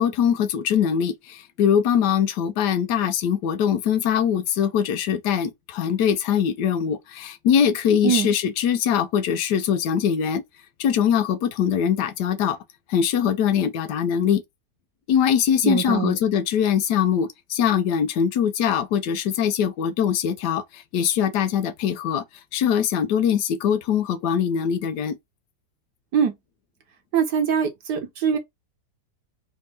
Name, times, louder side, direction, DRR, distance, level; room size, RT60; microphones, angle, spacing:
voice 1, 0.0-10.4 10.8-12.6 12.9-14.4 15.1-22.2 22.5-25.2, left 8 dB, 85° left, 1.3 m, -22 dB
voice 2, 15.6-16.2 26.1-26.3 27.1-28.4, right 7 dB, 80° right, 1.6 m, -22 dB
4.2 x 2.7 x 3.4 m
omnidirectional pair, 1.8 m